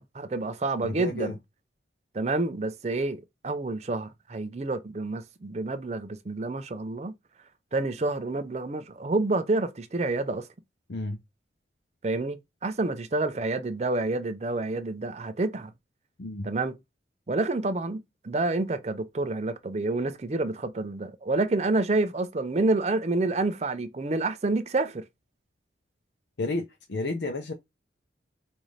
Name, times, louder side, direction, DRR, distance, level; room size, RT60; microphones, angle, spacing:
voice 1, 0.0-1.3 2.1-7.1 7.7-10.5 12.0-15.7 16.4-16.8 17.3-25.0, right 2 dB, 35° right, 0.5 m, -28 dB
voice 2, 0.8-1.3 10.9-11.2 16.2-16.5 26.4-27.5, left 2 dB, 70° left, 0.6 m, -31 dB
5.3 x 2.6 x 3.1 m
head